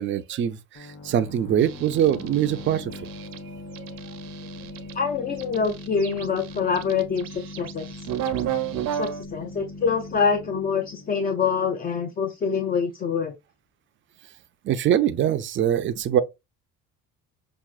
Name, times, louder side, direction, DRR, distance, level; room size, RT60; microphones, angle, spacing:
voice 1, 0.0-3.1 3.8-4.0 4.6-4.7 14.6-16.2, right 10 dB, 35° right, 0.4 m, -23 dB
sound 1, 0.7-12.2, left 2 dB, 50° left, 1.3 m, -40 dB
sound 2, 1.6-3.4 3.8-4.9 5.4-9.2, right 10 dB, 80° right, 0.8 m, -32 dB
voice 2, 4.9-8.0 8.9-13.3, left 6 dB, 25° left, 0.4 m, -25 dB
5.9 x 2.4 x 2.3 m
cardioid pair, 155°, 34 cm